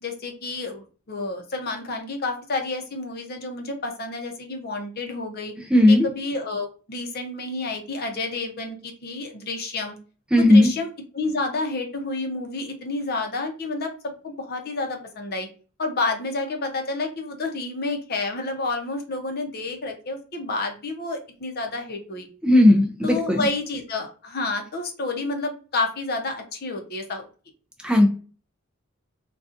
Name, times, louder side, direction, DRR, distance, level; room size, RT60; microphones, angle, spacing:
voice 1, 0.0-5.5 5.9-10.0 10.4-10.9 11.1-15.5 15.8-22.3 23.0-27.3, left 3 dB, 50° left, 4 dB, 0.6 m, -30 dB
voice 2, 5.7-6.1 10.3-10.7 22.4-23.5 27.8-28.1, left 1 dB, 5° right, 2 dB, 0.4 m, -15 dB
3.8 x 2.3 x 2.5 m, 0.37 s
head